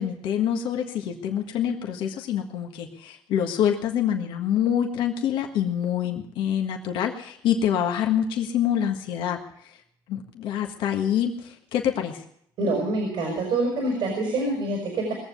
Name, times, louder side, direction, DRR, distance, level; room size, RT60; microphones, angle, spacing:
voice 1, 0.0-9.7 10.1-12.2, left 9 dB, 85° left, 3 dB, 1.6 m, -26 dB
voice 2, 12.6-15.1, right 2 dB, 80° right, 1 dB, 5.0 m, -26 dB
20.0 x 7.4 x 8.2 m, 0.70 s
cardioid pair, 90°, 8 cm